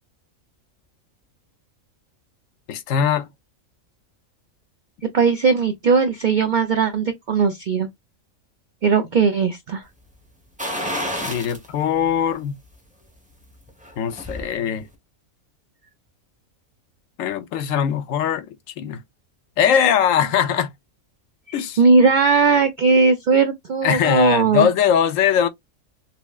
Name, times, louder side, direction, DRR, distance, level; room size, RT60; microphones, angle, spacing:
voice 1, 2.7-3.3 11.2-12.5 14.0-14.9 17.2-18.5 18.8-19.0 19.6-20.7 21.5-21.8 23.8-25.5, left 8 dB, 70° left, 0.9 m, -20 dB
voice 2, 5.1-7.9 8.8-9.8 21.8-24.7, right 5 dB, 60° right, 0.4 m, -18 dB
sound 1, 10.6-11.7 12.1-12.2 13.7-14.5 14.8-14.9, equal, 5° right, 0.8 m, -29 dB
5.8 x 2.0 x 2.3 m
omnidirectional pair, 1.5 m